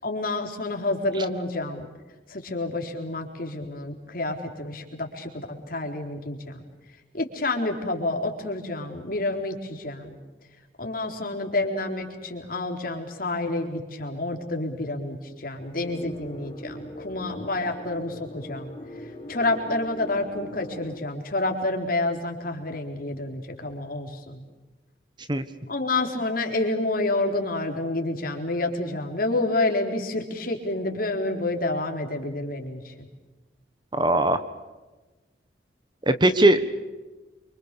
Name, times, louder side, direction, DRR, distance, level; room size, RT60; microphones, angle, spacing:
voice 1, 0.0-1.9 2.3-6.6 7.1-10.2 10.8-18.7 19.3-24.4 25.7-32.9, left 2 dB, 50° left, 3 dB, 4.1 m, -29 dB
sound 1, 15.8-21.0, left 1 dB, 30° left, 2.0 m, -40 dB
voice 2, 33.9-34.4 36.0-36.7, right 1 dB, 25° right, 11 dB, 1.3 m, -20 dB
29.0 x 25.5 x 6.9 m, 1.2 s
head